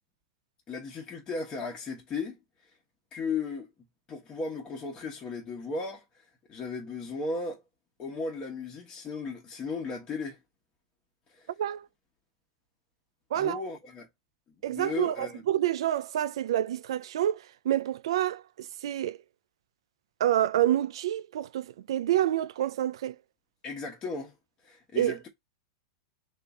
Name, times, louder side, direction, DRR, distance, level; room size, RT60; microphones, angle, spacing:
voice 1, 0.7-2.4 3.1-3.7 4.1-6.0 6.5-7.6 8.0-10.4 11.3-11.5 13.4-14.1 14.7-15.4 23.6-24.3 24.6-25.3, left 4 dB, 25° left, 1.1 m, -35 dB
voice 2, 14.6-19.2 20.2-23.2 25.0-25.2, right 12 dB, 80° right, 0.4 m, -28 dB
3.5 x 2.7 x 4.0 m
supercardioid pair, 140°, 3 cm